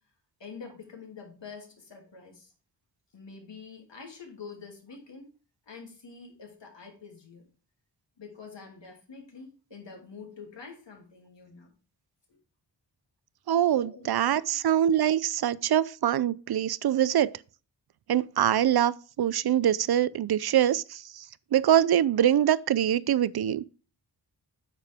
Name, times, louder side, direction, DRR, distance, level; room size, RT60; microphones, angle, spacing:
voice 1, 0.4-2.5 3.1-5.3 5.7-7.5 8.2-11.7 12.3-12.4 13.8-14.6, left 5 dB, 75° left, 2.9 m, -46 dB
voice 2, 13.5-17.3 18.1-18.9 19.2-21.0 21.5-23.6, right 10 dB, 60° right, 0.5 m, -24 dB
8.9 x 6.8 x 3.5 m
wide cardioid pair, 130°, 44 cm